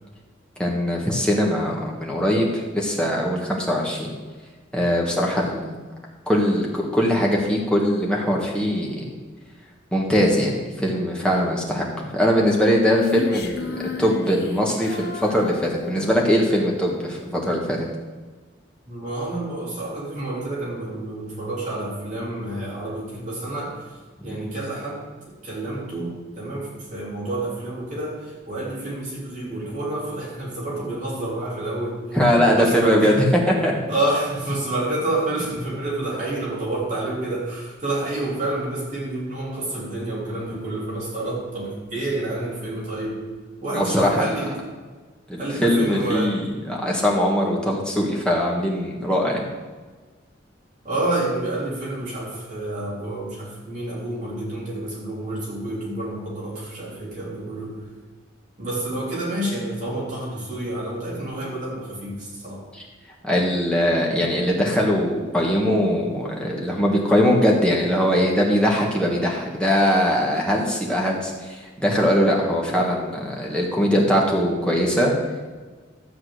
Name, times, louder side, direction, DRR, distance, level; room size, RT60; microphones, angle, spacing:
voice 1, 0.6-4.1 4.7-5.8 6.3-9.1 9.9-17.9 24.2-24.4 32.1-33.7 43.7-44.3 45.3-49.5 62.7-62.8 63.2-75.1, equal, 5° left, -3 dB, 1.7 m, -21 dB
Female singing, 13.0-16.5, left 5 dB, 55° left, 1.0 m, -33 dB
voice 2, 18.9-23.7 24.2-32.0 32.5-33.2 33.9-43.2 43.6-44.6 45.4-46.4 50.8-57.8 58.6-62.6, right 2 dB, 40° right, -7 dB, 3.4 m, -29 dB
12.5 x 4.3 x 8.1 m, 1.4 s
head